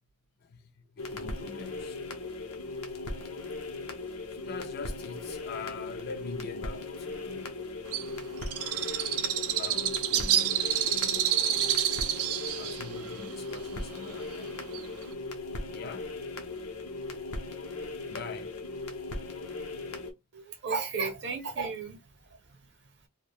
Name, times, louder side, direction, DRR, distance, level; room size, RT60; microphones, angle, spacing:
voice 1, 0.4-2.0 4.3-7.7 9.5-11.5 12.6-14.5 15.7-16.1 18.1-18.5, left 4 dB, 45° left, 0.4 m, -43 dB
sound 1, 1.0-20.1, left 2 dB, 75° left, 0.7 m, -38 dB
Bird, 7.9-15.1, right 10 dB, 75° right, 0.4 m, -29 dB
voice 2, 20.3-23.1, right 4 dB, 50° right, 0.7 m, -35 dB
2.4 x 2.1 x 3.3 m
head